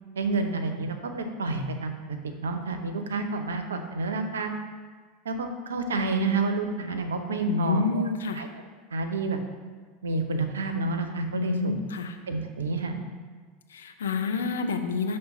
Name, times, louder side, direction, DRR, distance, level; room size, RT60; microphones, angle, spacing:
voice 1, 0.2-4.5 5.2-8.1 8.3-8.5 8.9-9.4 10.0-11.8 12.3-13.0, right 3 dB, 75° right, 6 dB, 0.5 m, -29 dB
voice 2, 7.4-8.5 11.3-12.2 13.7-15.2, left 4 dB, 75° left, 6 dB, 0.4 m, -28 dB
5.8 x 3.2 x 5.4 m, 1.5 s
figure-of-eight pair, 80°, 0 cm